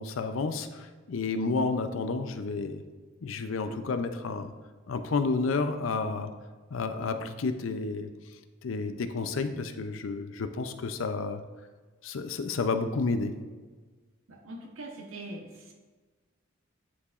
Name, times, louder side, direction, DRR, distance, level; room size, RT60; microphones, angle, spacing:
voice 1, 0.0-2.8 3.2-4.5 4.9-6.3 6.7-8.1 8.6-11.4 12.0-13.3, left 4 dB, 80° left, 9 dB, 0.5 m, -30 dB
voice 2, 14.3-15.7, right 2 dB, 90° right, 1 dB, 1.0 m, -42 dB
9.8 x 4.7 x 2.5 m, 1.4 s
head